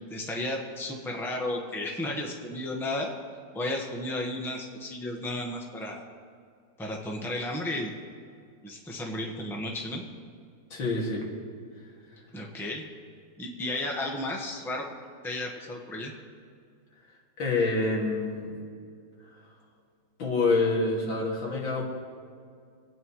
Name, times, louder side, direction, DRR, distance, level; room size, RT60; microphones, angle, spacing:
voice 1, 0.1-3.1 3.5-6.0 6.8-7.9 8.6-10.0 12.3-12.8 13.4-14.8 15.2-16.1, left 1 dB, ahead, 0 dB, 1.1 m, -33 dB
voice 2, 10.7-11.3 17.4-18.6 20.2-21.8, left 3 dB, 85° left, -3 dB, 3.1 m, -27 dB
27.0 x 9.2 x 3.2 m, 2.3 s
omnidirectional pair, 2.1 m